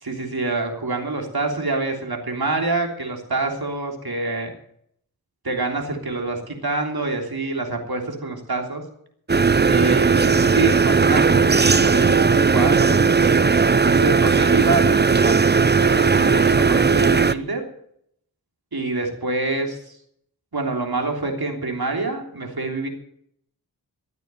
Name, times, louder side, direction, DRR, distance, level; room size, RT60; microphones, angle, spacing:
voice 1, 0.0-4.5 5.4-8.8 9.6-13.4 13.8-15.3 15.8-17.6 18.7-20.0 20.5-22.9, right 3 dB, 70° right, 2 dB, 3.3 m, -26 dB
sound 1, 9.3-17.3, right 5 dB, 25° right, 0.6 m, -17 dB
14.0 x 9.2 x 9.0 m, 0.70 s
wide cardioid pair, 40°, 39 cm